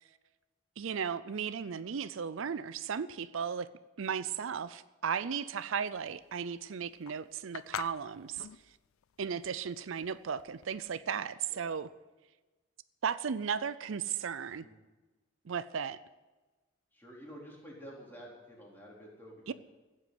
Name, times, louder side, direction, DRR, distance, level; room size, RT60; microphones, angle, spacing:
voice 1, 0.8-3.7 4.0-8.5 9.2-11.9 13.0-14.7 15.5-16.0 19.5-19.6, right 7 dB, 70° right, 15 dB, 0.5 m, -35 dB
sound 1, 5.9-11.0, left 9 dB, 90° left, 0.4 m, -45 dB
voice 2, 16.9-19.5, equal, 10° left, -4 dB, 4.0 m, -50 dB
15.5 x 8.2 x 9.5 m, 1.2 s
head